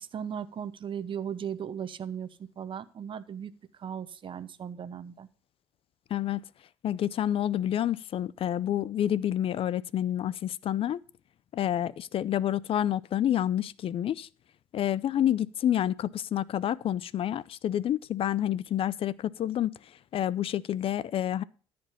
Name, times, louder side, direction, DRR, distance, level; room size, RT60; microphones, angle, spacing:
voice 1, 0.0-3.5 3.8-5.3, right 8 dB, 50° right, 0.9 m, -37 dB
voice 2, 6.1-6.4 6.8-11.0 11.5-14.3 14.7-19.7 20.1-21.4, left 11 dB, 55° left, 0.5 m, -28 dB
14.0 x 5.2 x 5.7 m
supercardioid pair, 75°, 11 cm